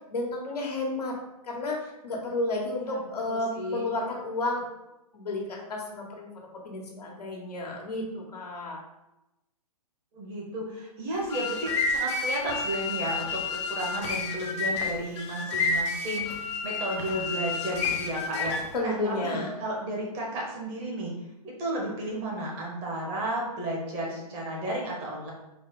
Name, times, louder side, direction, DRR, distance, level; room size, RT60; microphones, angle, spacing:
voice 1, 0.1-1.2 1.4-4.6 5.1-6.3 6.6-8.8 18.7-19.5, left 2 dB, 85° left, -1 dB, 1.2 m, -32 dB
voice 2, 2.8-3.9 10.1-21.1 21.4-25.3, right 1 dB, 30° right, -2 dB, 1.1 m, -33 dB
sound 1, 11.1-18.8, left 4 dB, 45° left, 0.7 m, -30 dB
4.0 x 2.4 x 3.7 m, 0.93 s
hypercardioid pair, 135°, 20 cm